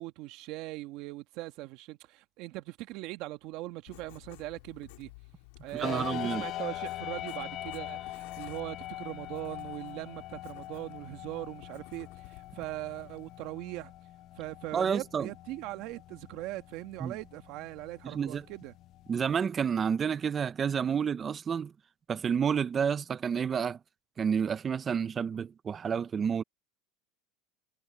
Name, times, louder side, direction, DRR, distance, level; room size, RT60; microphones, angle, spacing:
voice 1, 0.0-5.1 5.6-13.9 14.3-18.7, right 18 dB, 60° right, 1.3 m, -40 dB
Writing, 3.9-13.5, left 23 dB, 80° left, 2.8 m, -55 dB
voice 2, 5.7-6.4 14.7-15.3 17.0-17.2 18.0-18.4 19.1-21.7 22.1-23.8 24.2-26.4, right 7 dB, 25° right, 0.6 m, -30 dB
sound 1, 5.8-19.4, left 14 dB, 45° left, 0.9 m, -43 dB
supercardioid pair, 130°, 0 cm